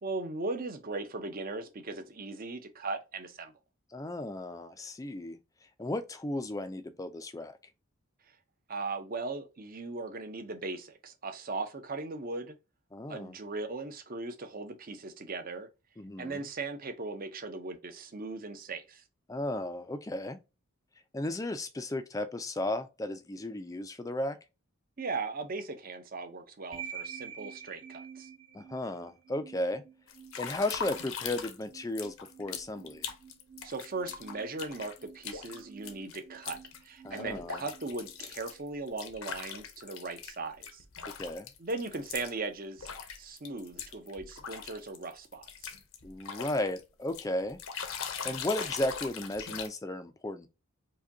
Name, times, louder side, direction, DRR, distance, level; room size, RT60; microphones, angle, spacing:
voice 1, 0.0-3.5 8.7-12.5 13.1-15.7 16.2-19.0 25.0-28.3 33.6-40.8 41.6-42.9 43.2-45.7, right 3 dB, 40° right, 0.6 m, -38 dB
voice 2, 3.9-5.4 5.8-7.6 12.9-13.4 16.0-16.4 19.3-20.4 21.1-24.4 28.5-29.8 30.4-33.1 37.0-37.6 41.2-41.5 46.0-47.6 48.2-50.5, left 1 dB, 15° left, 0.4 m, -35 dB
sound 1, 26.7-38.8, right 7 dB, 70° right, 1.9 m, -49 dB
sound 2, 30.1-31.6 31.9-40.4 40.6-42.3 42.8-46.8 47.1-49.7, left 7 dB, 70° left, 0.7 m, -41 dB
4.8 x 2.2 x 2.7 m
head